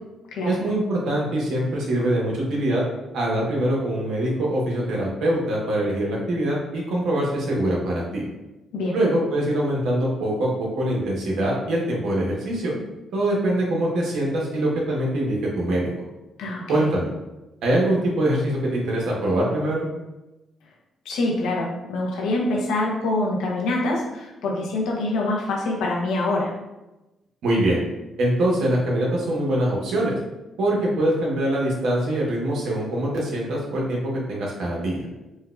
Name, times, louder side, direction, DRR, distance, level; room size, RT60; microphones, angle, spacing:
voice 1, 0.5-2.8 3.1-8.2 8.9-10.5 10.8-12.7 13.1-15.9 16.7-17.1 17.6-19.9 27.4-27.8 28.2-30.2 30.6-35.0, right 1 dB, 75° right, -3 dB, 1.0 m, -23 dB
voice 2, 16.4-16.9 21.0-26.5, left 2 dB, 85° left, -2 dB, 0.8 m, -25 dB
4.4 x 2.2 x 2.3 m, 1.0 s
cardioid pair, 90°, 0 cm